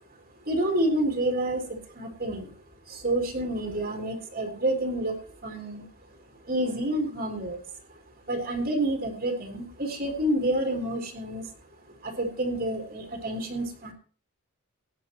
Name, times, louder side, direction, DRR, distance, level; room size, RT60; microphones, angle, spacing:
voice 1, 0.4-2.5 2.9-5.9 6.4-7.6 7.9-8.0 8.3-11.5 12.0-13.9, right 1 dB, 40° right, 2 dB, 3.5 m, -29 dB
18.5 x 11.5 x 3.0 m, 0.39 s
head